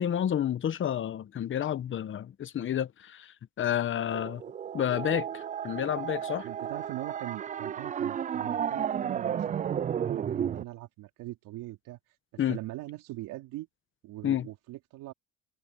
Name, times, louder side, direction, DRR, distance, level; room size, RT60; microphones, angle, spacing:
voice 1, 0.0-4.4 4.7-6.5 12.4-12.6 14.2-14.5, left 10 dB, 35° left, 1.0 m, -30 dB
sound 1, 4.1-10.6, right 9 dB, 25° right, 0.4 m, -33 dB
voice 2, 6.4-12.0 12.5-13.7 14.0-15.1, right 17 dB, 70° right, 3.8 m, -41 dB
supercardioid pair, 100°, 33 cm